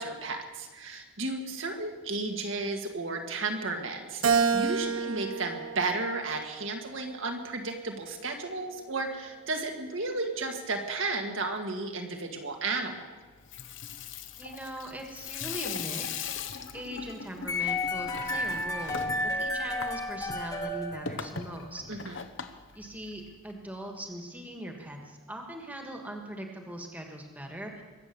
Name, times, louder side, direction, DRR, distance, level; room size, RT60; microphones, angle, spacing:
voice 1, 0.0-13.0 21.9-22.2, right 3 dB, 70° right, 3 dB, 1.9 m, -33 dB
Keyboard (musical), 4.2-6.7 7.3-8.5, right 6 dB, 85° right, 1.0 m, -30 dB
Water tap faucet / Sink (filling or washing), 13.3-23.5, left 6 dB, 60° left, 1.0 m, -40 dB
voice 2, 14.4-16.3 16.7-21.8 22.7-27.8, right 1 dB, 10° right, 2 dB, 1.6 m, -40 dB
sound 1, 17.5-21.6, left 2 dB, 15° left, 1.3 m, -32 dB
23.0 x 8.2 x 7.0 m, 1.3 s
head